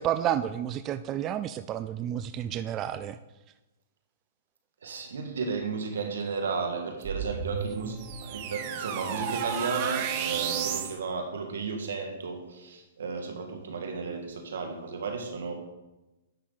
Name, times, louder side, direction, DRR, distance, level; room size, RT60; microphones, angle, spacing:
voice 1, 0.0-3.2, right 10 dB, 30° right, 11 dB, 0.3 m, -30 dB
voice 2, 4.8-15.5, right 4 dB, 80° right, 4 dB, 1.7 m, -34 dB
sound 1, 7.0-11.0, right 8 dB, 45° right, 1.1 m, -32 dB
9.9 x 6.2 x 4.0 m, 1.1 s
hypercardioid pair, 130°, 0 cm